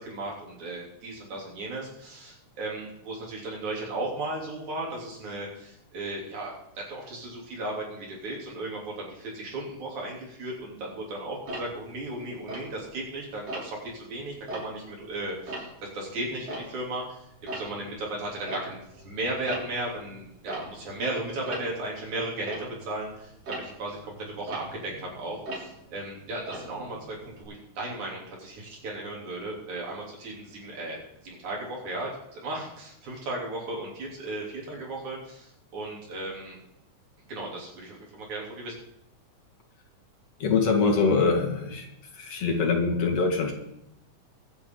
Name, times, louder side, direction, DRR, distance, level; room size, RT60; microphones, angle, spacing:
voice 1, 0.0-15.7 15.9-17.0 17.4-24.9 25.2-31.0 31.2-36.6 37.3-38.7, right 2 dB, 75° right, -3 dB, 4.7 m, -35 dB
Tick-tock, 11.5-13.1 13.5-13.9 14.3-17.1 17.3-27.4, right 1 dB, 55° right, 4.7 m, -41 dB
voice 2, 40.4-41.9 42.1-43.5, left 4 dB, 55° left, 1 dB, 2.7 m, -24 dB
23.5 x 8.5 x 3.9 m, 0.81 s
omnidirectional pair, 3.4 m